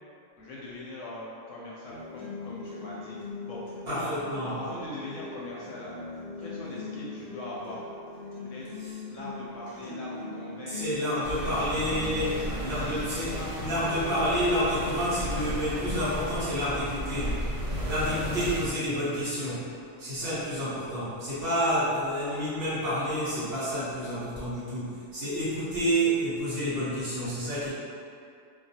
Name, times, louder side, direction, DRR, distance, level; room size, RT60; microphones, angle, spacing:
voice 1, 0.4-3.2 3.5-4.1 4.4-5.9 6.4-7.9 8.4-8.7 9.1-11.8 12.2-13.5 14.0-14.1 17.7-18.2 20.2-20.4, left 1 dB, 70° left, -6 dB, 0.9 m, -41 dB
sound 1, 1.9-17.9, left 2 dB, 25° right, 0.7 m, -41 dB
voice 2, 3.9-4.5 10.7-17.4 17.9-19.7 20.0-27.7, equal, 55° right, -11 dB, 0.9 m, -29 dB
sound 2, 11.2-18.7, equal, 75° right, 1.0 m, -34 dB
2.3 x 2.3 x 2.7 m, 2.4 s
omnidirectional pair, 1.4 m